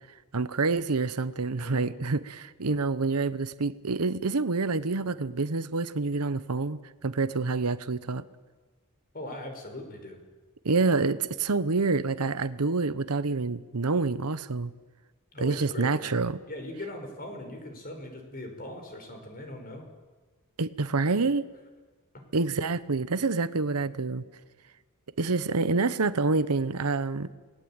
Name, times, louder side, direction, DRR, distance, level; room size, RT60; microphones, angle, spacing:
voice 1, 0.3-8.2 10.6-14.7 15.4-16.4 20.6-21.5 22.3-24.2 25.2-27.3, right 3 dB, 90° right, 14 dB, 1.0 m, -27 dB
voice 2, 1.6-2.0 9.1-10.2 15.3-16.2 16.5-19.8 22.1-22.2, left 1 dB, 40° left, 5 dB, 5.4 m, -40 dB
28.5 x 20.5 x 8.9 m, 1.3 s
head